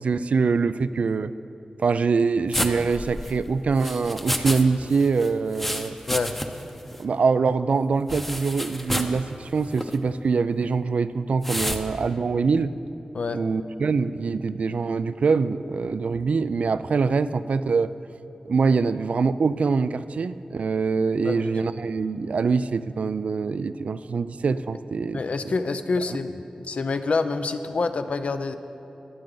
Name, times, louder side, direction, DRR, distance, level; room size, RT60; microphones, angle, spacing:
voice 1, 0.0-1.3 1.8-6.0 7.0-12.7 13.3-17.9 18.5-25.2, right 4 dB, 80° right, 14 dB, 0.3 m, -24 dB
sound 1, 2.5-4.6 4.9-6.7 7.0-7.1 8.1-9.2 9.7-10.0 11.4-11.8, left 1 dB, 10° left, 0.7 m, -30 dB
voice 2, 25.1-28.6, left 3 dB, 70° left, 9 dB, 0.6 m, -27 dB
22.0 x 7.9 x 3.9 m, 2.8 s
wide cardioid pair, 110°, 2 cm